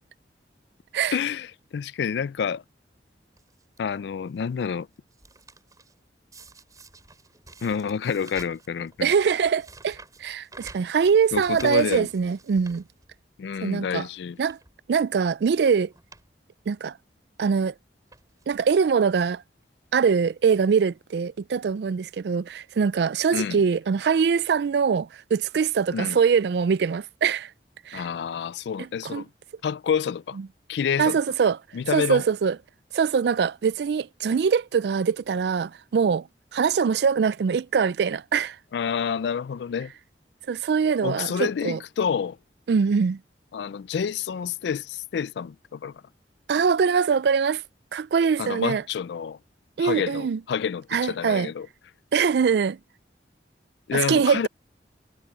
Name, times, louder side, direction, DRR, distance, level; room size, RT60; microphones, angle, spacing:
voice 1, 1.1-2.6 3.8-4.9 7.6-9.1 11.3-12.1 13.4-14.4 23.3-23.6 25.9-26.2 27.9-29.3 29.6-30.4 30.7-31.2 31.7-32.2 38.7-39.9 41.0-42.4 43.5-45.9 48.4-49.4 49.8-51.7 53.9-54.5, left 7 dB, 70° left, 0.3 m, -28 dB
sound 1, 3.4-3.8 4.4-4.7 5.0-5.9 6.3-13.4 13.8-13.9 14.4-14.7 15.5-15.7 15.9-16.3 16.6-16.7 17.6-17.7 18.1-18.6 19.3-19.4 19.6-19.7, right 3 dB, 20° right, 5.0 m, -48 dB
voice 2, 9.0-12.8 13.6-14.1 14.4-14.6 14.9-15.9 16.7-16.9 17.4-17.7 18.5-19.4 19.9-27.5 27.9-28.1 28.8-29.2 31.0-31.6 31.9-32.6 32.9-36.3 36.5-38.6 40.5-41.8 42.7-43.2 46.5-47.6 47.9-48.8 49.8-50.4 50.9-51.5 52.1-52.8 53.9-54.5, right 6 dB, 65° right, 0.3 m, -23 dB
head